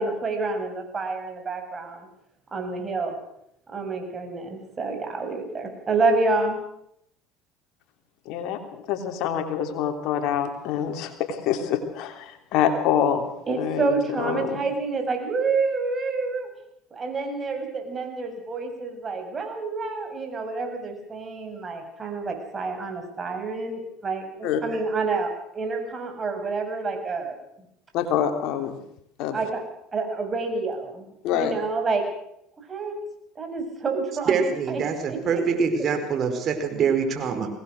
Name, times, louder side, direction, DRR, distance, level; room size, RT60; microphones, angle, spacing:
voice 1, 0.0-2.1 2.5-3.2 3.7-6.6 13.5-16.5 16.9-27.4 29.3-29.6 29.9-32.0 32.7-33.0 33.4-34.8 35.1-35.4 35.8-35.9, right 3 dB, 30° right, 4 dB, 7.0 m, -28 dB
voice 2, 8.2-13.3 13.6-14.6 24.4-24.6 27.9-28.8 29.2-29.4 31.2-31.5, left 9 dB, 65° left, 7 dB, 3.1 m, -26 dB
voice 3, 34.3-37.5, right 6 dB, 50° right, 6 dB, 4.7 m, -24 dB
23.0 x 19.0 x 6.5 m, 0.75 s
hypercardioid pair, 80°, 0 cm